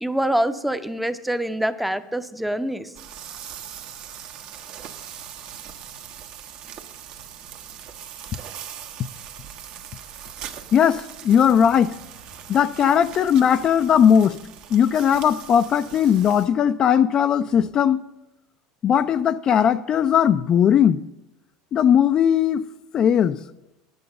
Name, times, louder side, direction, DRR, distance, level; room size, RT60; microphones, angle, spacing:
voice 1, 0.0-2.9, right 1 dB, 5° right, 0.6 m, -25 dB
sound 1, 2.9-16.5, right 9 dB, 55° right, 1.0 m, -40 dB
voice 2, 10.7-12.0 12.5-14.4 14.7-18.0 18.8-21.0 21.7-22.6 22.9-23.4, left 8 dB, 40° left, 0.4 m, -18 dB
9.7 x 8.0 x 6.5 m
supercardioid pair, 105°, 2 cm